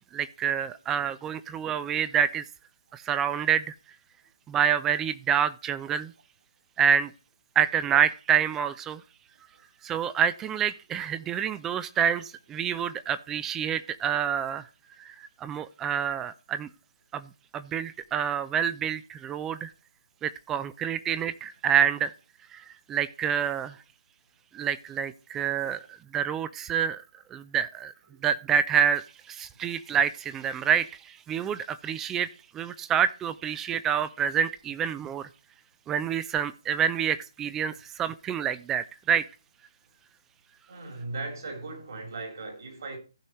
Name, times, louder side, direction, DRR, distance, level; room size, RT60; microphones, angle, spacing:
voice 1, 0.1-2.4 2.9-3.7 4.5-6.1 6.8-7.1 7.6-9.0 9.8-14.6 15.0-16.7 17.1-19.7 20.2-22.1 22.5-23.8 24.5-27.0 27.3-27.9 28.2-32.3 32.5-35.3 35.9-39.2, right 8 dB, 15° right, 0.5 m, -27 dB
voice 2, 40.7-43.0, right 3 dB, 60° right, 3.4 m, -38 dB
15.5 x 5.4 x 3.1 m
figure-of-eight pair, 140°, 2 cm